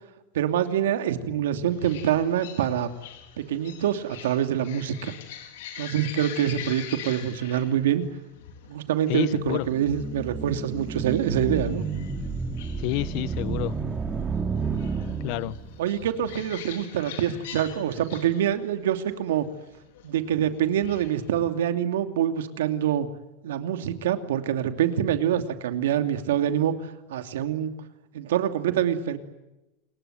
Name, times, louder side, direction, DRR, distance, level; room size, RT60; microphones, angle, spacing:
voice 1, 0.3-2.9 3.4-5.1 5.8-8.0 8.7-11.8 15.8-19.4 20.0-23.1 23.4-26.7 27.1-27.7 28.1-29.2, right 10 dB, 90° right, 2.7 m, -25 dB
sound 1, 1.7-21.4, left 9 dB, 80° left, 4.4 m, -45 dB
voice 2, 9.1-9.7 12.8-13.8 15.2-15.6, left 18 dB, 60° left, 1.2 m, -29 dB
sound 2, 9.5-15.8, right 5 dB, 20° right, 3.0 m, -31 dB
29.5 x 21.5 x 9.3 m
supercardioid pair, 130°, 0 cm